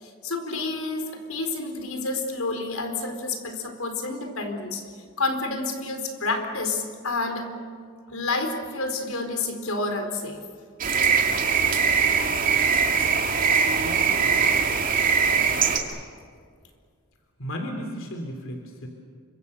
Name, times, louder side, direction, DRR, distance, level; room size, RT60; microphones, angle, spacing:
voice 1, 0.0-4.8 5.2-7.5 8.1-10.4, left 3 dB, 85° left, 5 dB, 4.3 m, -29 dB
sound 1, 10.8-15.8, right 6 dB, 40° right, 2.7 m, -21 dB
voice 2, 13.8-14.8 17.4-18.9, equal, 65° left, 4 dB, 3.4 m, -35 dB
29.5 x 25.5 x 6.8 m, 2.1 s
head